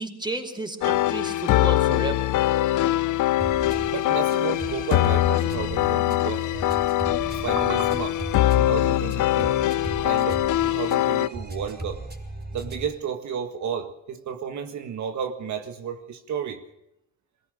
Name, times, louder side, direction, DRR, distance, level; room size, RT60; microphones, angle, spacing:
voice 1, 0.0-2.3, right 2 dB, 15° right, 5 dB, 4.9 m, -32 dB
sound 1, 0.8-11.3, left 14 dB, 80° left, 0.8 m, -22 dB
sound 2, 3.4-13.0, right 2 dB, 35° right, 5.6 m, -37 dB
voice 2, 3.8-6.5 7.4-8.2 8.6-9.6 10.0-12.0 12.5-16.6, right 7 dB, 70° right, 6 dB, 1.8 m, -32 dB
21.5 x 19.5 x 6.5 m, 0.85 s
cardioid pair, 90°, 30 cm